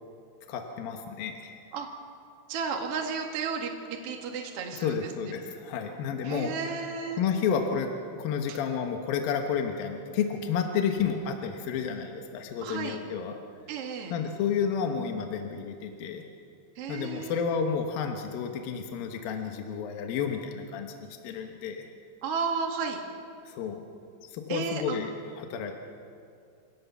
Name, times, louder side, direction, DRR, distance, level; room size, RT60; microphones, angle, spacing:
voice 1, 0.5-1.6 4.8-6.5 7.2-7.9 8.2-13.4 14.1-16.2 16.9-20.9 21.2-21.9 23.5-23.9 24.2-25.7, left 7 dB, 70° left, 4 dB, 2.4 m, -31 dB
voice 2, 2.5-5.3 6.2-7.2 8.5-8.6 12.6-13.0 13.7-14.1 16.8-17.4 22.2-23.0 24.5-25.0, right 5 dB, 55° right, 2 dB, 1.7 m, -33 dB
27.0 x 18.0 x 7.1 m, 2.4 s
omnidirectional pair, 5.6 m